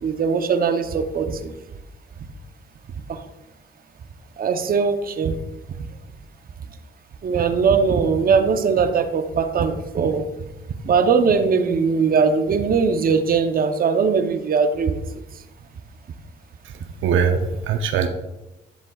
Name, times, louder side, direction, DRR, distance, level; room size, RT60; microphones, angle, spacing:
voice 1, 0.0-1.5 3.1-3.2 4.4-5.4 7.2-10.3 10.9-15.0, right 5 dB, 45° right, 8 dB, 0.8 m, -20 dB
voice 2, 16.6-18.1, right 6 dB, 80° right, 6 dB, 0.6 m, -22 dB
11.5 x 7.3 x 2.4 m, 1.0 s
cardioid pair, 90°, 20 cm